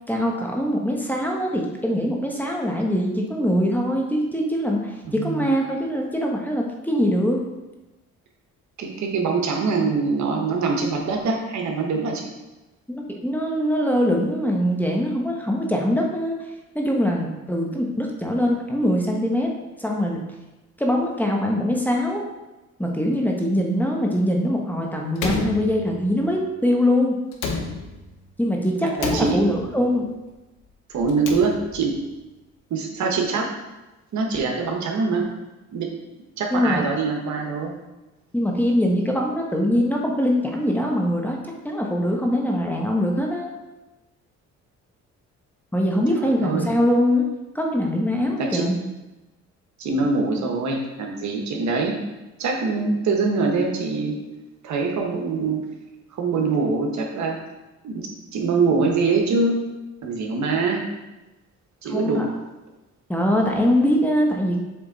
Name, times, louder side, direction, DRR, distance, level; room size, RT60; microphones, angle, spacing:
voice 1, 0.1-7.4 12.9-16.4 16.7-19.5 19.8-20.2 20.8-22.2 22.8-27.2 28.4-30.1 36.5-36.8 38.3-41.4 41.6-43.5 45.7-47.2 47.5-48.8 61.9-62.2 63.1-64.6, equal, 5° left, 0 dB, 1.0 m, -22 dB
voice 2, 5.2-5.5 8.8-12.3 29.0-29.8 30.9-31.9 32.7-33.5 34.1-35.3 35.7-35.9 36.4-37.7 46.2-46.7 48.4-48.7 49.8-51.9 52.4-54.2 54.6-55.6 56.1-57.4 57.8-59.6 60.0-60.8 61.8-62.3, right 4 dB, 65° right, 1 dB, 1.2 m, -24 dB
Slam, 25.2-26.3 27.3-28.2 29.0-29.9 31.0-32.0, left 3 dB, 85° left, 0.8 m, -30 dB
7.2 x 3.3 x 4.0 m, 1.1 s
cardioid pair, 90°, 30 cm